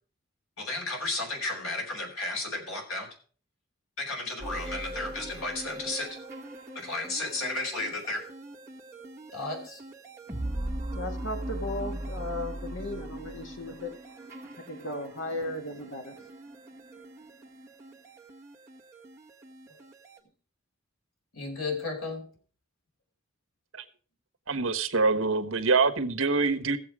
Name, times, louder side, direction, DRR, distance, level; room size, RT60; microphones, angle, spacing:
voice 1, 0.6-3.1 4.0-6.2 6.7-8.3 9.3-9.8 19.7-19.8 21.3-22.3, left 2 dB, 85° left, 4.7 m, -33 dB
sound 1, 4.4-20.2, right 1 dB, 15° right, 1.4 m, -40 dB
voice 2, 10.9-13.9 14.7-16.3, left 1 dB, 65° left, 2.1 m, -36 dB
voice 3, 24.5-26.8, right 4 dB, 70° right, 1.2 m, -25 dB
16.5 x 7.5 x 4.9 m
head